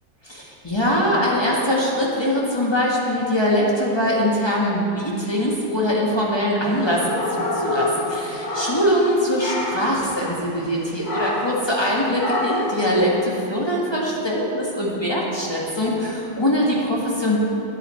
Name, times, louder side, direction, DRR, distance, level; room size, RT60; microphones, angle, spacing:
voice 1, 0.2-17.4, equal, 15° left, -4 dB, 1.1 m, -22 dB
sound 1, 6.7-9.1 9.4-9.9 11.0-11.6 12.2-12.8, left 2 dB, 60° left, 1.8 m, -26 dB
9.8 x 9.0 x 4.4 m, 2.8 s
omnidirectional pair, 2.0 m